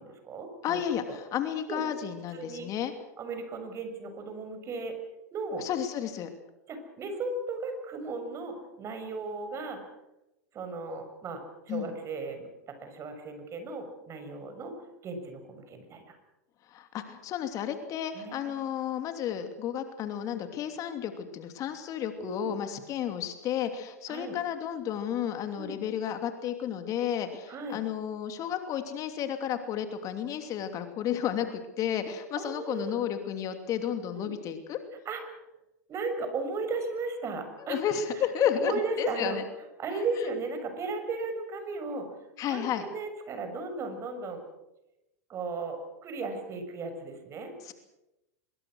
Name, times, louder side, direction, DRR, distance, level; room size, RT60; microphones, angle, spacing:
voice 1, 0.0-0.8 1.1-1.2 1.7-1.8 2.3-2.7 3.2-4.9 5.3-5.7 6.7-9.8 10.5-11.4 11.7-12.5 12.8-14.7 15.0-16.2 18.1-18.6 22.2-22.5 24.1-24.4 25.6-25.8 27.5-27.8 32.4-33.0 34.1-34.3 35.0-35.4 35.9-37.8 38.1-38.2 38.6-39.4 39.8-42.1 42.4-44.4 45.3-47.5, right 3 dB, 35° right, 7 dB, 6.4 m, -36 dB
voice 2, 0.6-2.9 5.6-6.3 11.7-11.9 16.7-34.8 37.6-39.4 39.9-40.0 42.4-42.9 47.6-47.7, left 9 dB, 40° left, 7 dB, 2.8 m, -32 dB
24.5 x 22.5 x 6.4 m, 0.92 s
hypercardioid pair, 100°, 9 cm